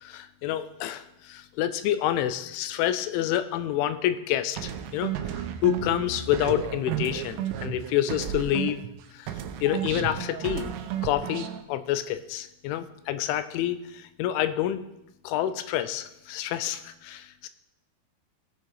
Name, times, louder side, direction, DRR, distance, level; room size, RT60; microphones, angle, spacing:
voice 1, 0.0-8.8 9.1-9.3 9.6-10.7 11.0-14.8 15.2-17.5, left 12 dB, 80° left, 11 dB, 2.9 m, -28 dB
sound 1, 4.6-9.0 9.3-11.6, right 10 dB, 80° right, 3.3 m, -33 dB
19.5 x 7.1 x 4.8 m, 0.88 s
omnidirectional pair, 5.9 m